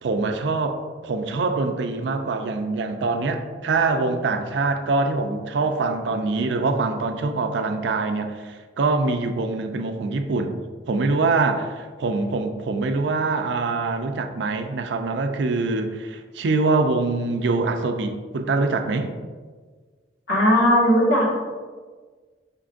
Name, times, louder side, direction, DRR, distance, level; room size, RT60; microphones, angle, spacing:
voice 1, 0.0-10.6 10.9-19.1, right 3 dB, 75° right, 6 dB, 0.4 m, -24 dB
voice 2, 20.3-21.4, equal, 75° left, -4 dB, 1.3 m, -18 dB
5.2 x 3.7 x 2.4 m, 1.5 s
head